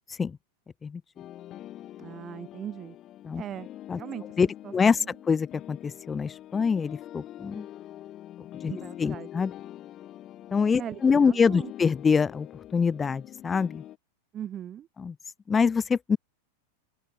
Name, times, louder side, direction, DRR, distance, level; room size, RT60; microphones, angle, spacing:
sound 1, 1.2-14.0, left 13 dB, 30° left, 4.9 m, -44 dB
voice 1, 2.0-3.0 3.3-3.7 3.9-4.4 4.6-4.7 5.0-5.1 8.7-9.3 10.8-11.7 14.3-14.9, right 10 dB, 25° right, 2.2 m, -39 dB
voice 2, 4.4-5.0 5.3-7.7 8.6-8.7 9.0-9.5 10.5-12.5 12.7-13.8 15.0-15.1 15.5-16.2, left 5 dB, 15° left, 1.5 m, -25 dB
open air
figure-of-eight pair, 90°, 0 cm